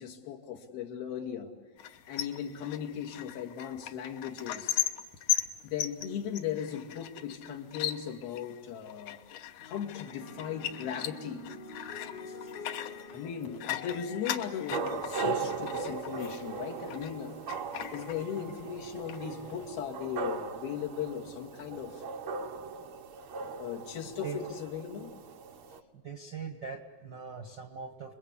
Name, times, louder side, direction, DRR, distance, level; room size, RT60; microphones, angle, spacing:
voice 1, 0.0-1.5 2.1-4.8 5.6-9.2 9.7-11.4 13.1-17.4 17.9-22.0 23.6-25.1, left 8 dB, 85° left, 0 dB, 4.3 m, -37 dB
sound 1, 1.8-17.2 17.5-18.7 19.0-19.6, left 11 dB, 65° left, 2.3 m, -38 dB
sound 2, 9.6-18.2 19.1-19.5, left 3 dB, 45° left, 1.3 m, -49 dB
voice 2, 11.9-12.8 21.7-21.8 22.6-22.9 24.0-24.6 25.9-28.1, right 5 dB, 55° right, 5 dB, 1.2 m, -43 dB
sound 3, 14.7-25.8, right 5 dB, 75° right, 1.2 m, -38 dB
29.5 x 22.0 x 8.5 m, 1.3 s
omnidirectional pair, 4.2 m